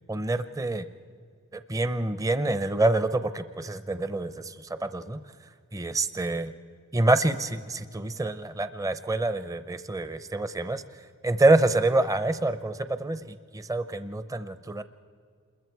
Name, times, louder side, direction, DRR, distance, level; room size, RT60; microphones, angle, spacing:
voice 1, 0.1-0.8 1.7-4.5 4.8-5.2 5.7-6.5 6.9-10.8 11.2-14.8, right 2 dB, 15° right, 12 dB, 0.6 m, -26 dB
28.0 x 22.0 x 4.7 m, 2.1 s
head